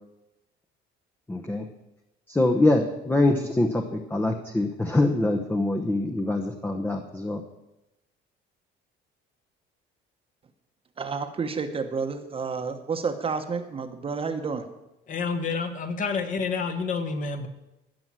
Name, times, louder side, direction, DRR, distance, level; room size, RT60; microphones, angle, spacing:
voice 1, 1.3-1.7 2.3-7.4, left 2 dB, 10° left, 3 dB, 0.9 m, -24 dB
voice 2, 11.0-14.6, right 5 dB, 30° right, 7 dB, 1.1 m, -30 dB
voice 3, 15.1-17.5, left 4 dB, 40° left, 7 dB, 1.5 m, -29 dB
15.5 x 6.1 x 7.5 m, 0.94 s
cardioid pair, 135°, 20 cm